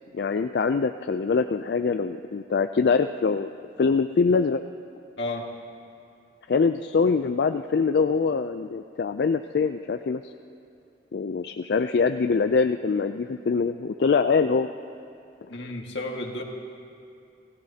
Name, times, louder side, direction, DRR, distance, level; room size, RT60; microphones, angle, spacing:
voice 1, 0.1-3.5 3.8-4.6 6.5-10.3 11.1-14.7 15.6-15.7, left 5 dB, 65° left, 8 dB, 0.4 m, -24 dB
voice 2, 5.2-5.5 15.5-16.4, left 2 dB, 85° left, 0 dB, 1.8 m, -32 dB
27.5 x 16.5 x 2.8 m, 2.6 s
head